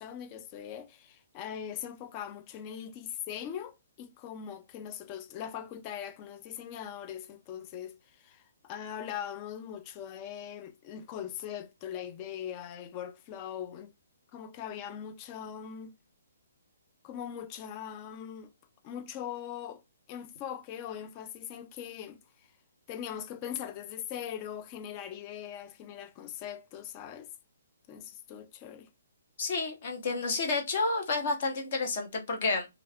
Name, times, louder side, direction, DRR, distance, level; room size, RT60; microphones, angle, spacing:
voice 1, 0.0-13.9 14.3-15.9 17.0-18.5 18.8-19.8 20.1-22.2 22.9-27.3 27.9-28.9, left 9 dB, 25° left, 0.3 m, -41 dB
voice 2, 29.4-32.7, left 3 dB, 40° left, 0.9 m, -30 dB
2.4 x 2.3 x 3.4 m
hypercardioid pair, 165°, 0 cm